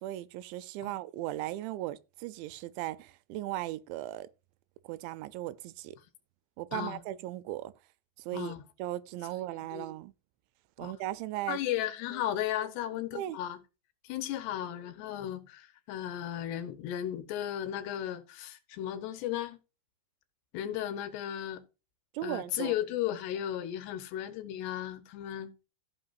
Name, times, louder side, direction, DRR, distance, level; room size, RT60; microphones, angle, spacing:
voice 1, 0.0-4.3 4.8-6.0 6.6-7.7 8.2-10.1 10.8-11.6 13.1-13.4 22.1-22.8, right 15 dB, 85° right, 2.9 m, -37 dB
voice 2, 11.5-13.6 14.0-19.6 20.5-21.6 22.2-25.5, left 11 dB, 75° left, 3.0 m, -35 dB
15.5 x 6.1 x 2.5 m
omnidirectional pair, 5.2 m